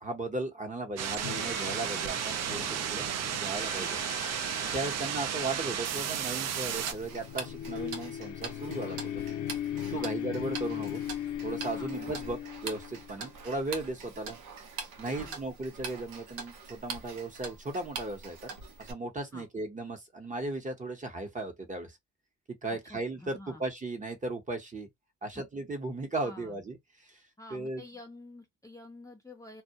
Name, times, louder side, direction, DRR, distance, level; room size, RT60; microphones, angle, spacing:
voice 1, 0.0-4.0 4.6-9.2 9.9-11.0 11.4-14.4 15.0-18.4 18.8-22.0 22.6-24.9 25.2-27.2 27.5-27.8, right 2 dB, 25° right, 0.8 m, -36 dB
sound 1, 1.0-6.9, right 9 dB, 60° right, 0.5 m, -33 dB
sound 2, 1.2-13.3, left 11 dB, 85° left, 0.6 m, -39 dB
Tick-tock, 6.7-18.9, right 5 dB, 90° right, 0.8 m, -43 dB
voice 2, 22.7-23.6 25.3-25.4 26.2-26.6 27.4-29.6, left 1 dB, 10° left, 0.5 m, -49 dB
2.2 x 2.1 x 2.7 m
cardioid pair, 90°, 30 cm